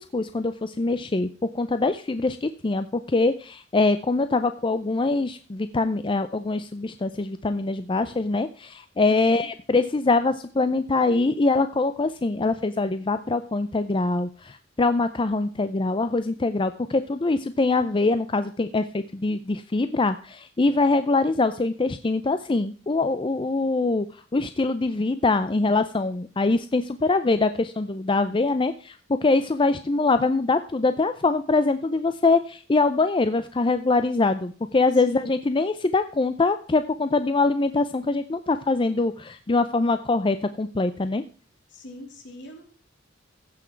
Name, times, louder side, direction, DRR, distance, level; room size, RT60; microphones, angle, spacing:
voice 1, 0.1-1.3 1.5-24.1 24.3-41.2, left 3 dB, 25° left, 10 dB, 0.5 m, -23 dB
voice 2, 9.1-9.5 35.0-35.3 41.7-42.6, left 2 dB, 65° left, 2 dB, 3.3 m, -41 dB
15.5 x 6.1 x 4.5 m, 0.40 s
head